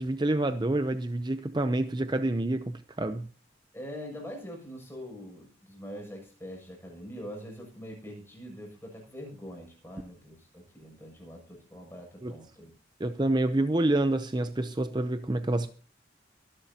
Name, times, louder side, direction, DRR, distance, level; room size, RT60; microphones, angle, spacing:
voice 1, 0.0-3.3 12.2-12.3 13.0-15.7, right 1 dB, 25° right, 0.6 m, -28 dB
voice 2, 3.7-12.7, equal, 15° left, 7.0 m, -43 dB
24.5 x 11.5 x 2.9 m
head